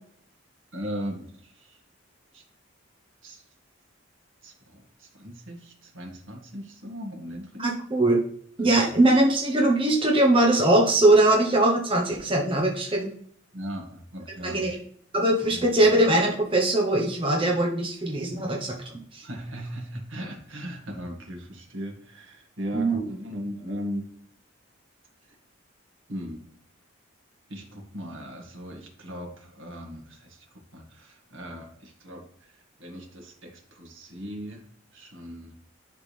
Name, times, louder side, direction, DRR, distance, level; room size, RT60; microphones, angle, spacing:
voice 1, 0.7-1.8 2.3-2.4 3.2-3.4 4.4-7.8 8.6-8.8 13.5-14.7 15.4-15.7 19.2-24.1 26.1-26.4 27.5-34.6 34.9-35.5, equal, 75° right, 1 dB, 1.9 m, -38 dB
voice 2, 7.6-8.2 8.6-13.1 14.4-14.8 15.1-18.7 19.1-19.2 22.7-23.0, right 1 dB, 25° right, -1 dB, 1.0 m, -21 dB
10.5 x 3.7 x 3.3 m, 0.63 s
head